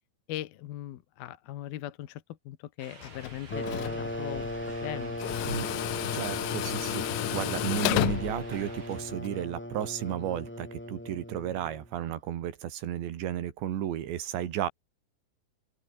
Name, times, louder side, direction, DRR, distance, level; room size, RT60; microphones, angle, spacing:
voice 1, 0.3-4.5 4.8-5.2, left 13 dB, 65° left, 2.9 m, -39 dB
sound 1, 2.8-9.2, right 4 dB, 30° right, 4.1 m, -50 dB
Tools, 3.0-9.3, left 21 dB, 85° left, 2.9 m, -33 dB
sound 2, 3.5-11.9, left 1 dB, 5° left, 1.9 m, -37 dB
voice 2, 6.1-14.7, right 11 dB, 80° right, 4.4 m, -33 dB
open air
omnidirectional pair, 5.1 m